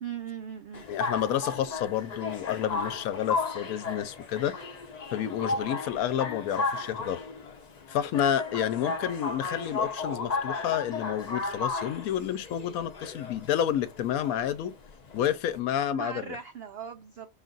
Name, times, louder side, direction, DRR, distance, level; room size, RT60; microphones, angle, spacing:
voice 1, 0.0-0.8 15.9-17.3, right 8 dB, 75° right, 0.5 m, -39 dB
sound 1, 0.7-15.6, left 4 dB, 50° left, 0.5 m, -34 dB
voice 2, 0.9-4.5 5.1-7.2 7.9-14.7 15.1-16.4, left 10 dB, 75° left, 1.0 m, -30 dB
5.5 x 2.4 x 3.9 m
omnidirectional pair, 1.6 m